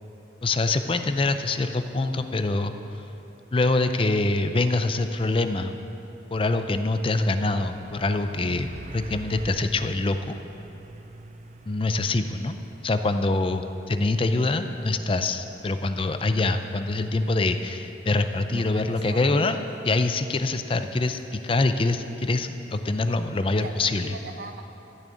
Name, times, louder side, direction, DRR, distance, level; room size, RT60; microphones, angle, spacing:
voice 1, 0.4-2.7 3.5-5.8 6.3-10.3 11.7-12.6 12.8-19.6 19.8-24.1, left 2 dB, 30° left, 8 dB, 0.5 m, -25 dB
Truck, 6.0-18.2, right 2 dB, 40° right, 0.5 m, -47 dB
voice 2, 18.5-19.7 21.0-21.2 23.6-24.6, right 2 dB, 70° right, 5 dB, 1.0 m, -40 dB
14.0 x 6.5 x 8.4 m, 2.9 s
head